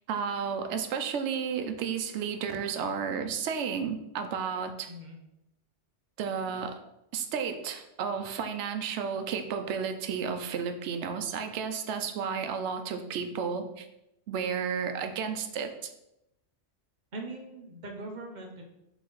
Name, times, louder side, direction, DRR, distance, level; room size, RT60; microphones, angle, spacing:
voice 1, 0.1-4.9 6.2-6.8 7.1-13.9 14.3-15.9, right 6 dB, 75° right, 7 dB, 0.9 m, -32 dB
voice 2, 4.9-5.2 17.1-18.6, right 2 dB, 45° right, 1 dB, 0.8 m, -41 dB
3.9 x 2.8 x 4.6 m, 0.87 s
omnidirectional pair, 1.2 m